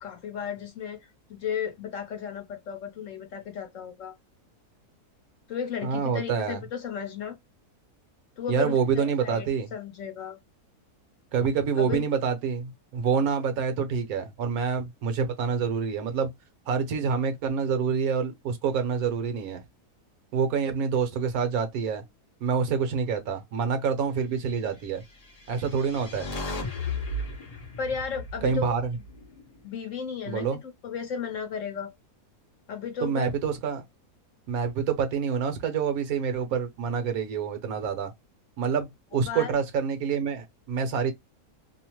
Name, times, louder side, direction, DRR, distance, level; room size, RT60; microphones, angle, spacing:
voice 1, 0.0-4.2 5.5-7.4 8.4-10.4 11.8-12.0 27.8-28.7 29.6-31.9 32.7-33.3 39.3-39.6, left 6 dB, 65° left, 0.9 m, -34 dB
voice 2, 5.8-6.6 8.5-9.7 11.3-16.3 16.7-19.6 20.3-22.0 22.4-25.0 25.5-26.3 28.4-28.9 30.3-30.6 33.0-33.8 34.5-38.1 38.6-41.1, right 6 dB, 70° right, 1.1 m, -27 dB
sound 1, 25.2-29.5, left 2 dB, 45° left, 0.5 m, -35 dB
2.8 x 2.0 x 2.9 m
omnidirectional pair, 1.7 m